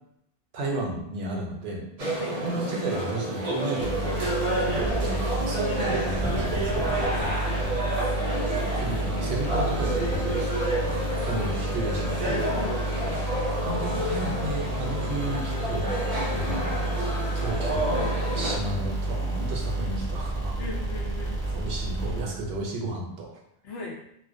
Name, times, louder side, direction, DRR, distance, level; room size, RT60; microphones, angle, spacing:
voice 1, 0.5-4.3 4.7-6.8 8.6-12.4 13.7-15.9 16.3-16.9 17.3-20.6 21.5-23.4, right 2 dB, 80° right, 0 dB, 0.8 m, -33 dB
sound 1, 2.0-18.6, right 1 dB, 45° right, 0.5 m, -29 dB
sound 2, 3.8-22.6, right 1 dB, 5° left, 0.5 m, -30 dB
voice 2, 12.5-13.5 16.3-16.5 20.6-21.4 23.6-24.0, left 3 dB, 75° left, -2 dB, 0.9 m, -39 dB
2.4 x 2.1 x 2.5 m, 0.76 s
omnidirectional pair, 1.1 m